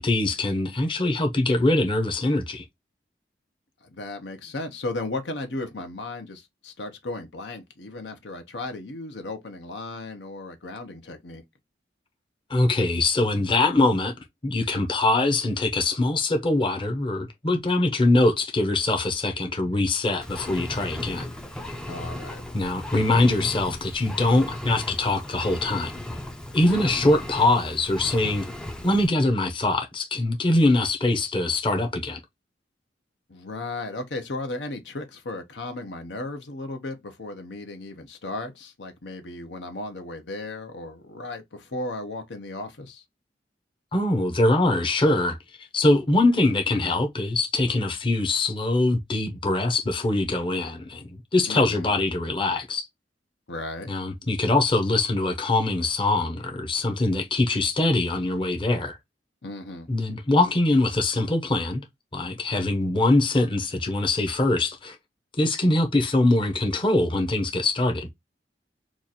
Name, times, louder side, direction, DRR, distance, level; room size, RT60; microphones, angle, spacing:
voice 1, 0.0-2.6 12.5-14.1 14.4-21.3 22.5-25.9 26.5-28.5 28.8-32.2 43.9-52.9 53.9-59.0 59.9-61.8 62.1-65.0 65.4-68.1, left 2 dB, 30° left, 0.8 m, -23 dB
voice 2, 3.8-11.4 21.9-22.4 26.7-27.1 33.3-43.0 51.5-51.9 53.5-53.9 59.4-59.9, left 2 dB, 75° left, 0.8 m, -35 dB
Engine, 20.2-29.1, left 1 dB, 5° left, 0.5 m, -36 dB
3.0 x 2.5 x 3.9 m
head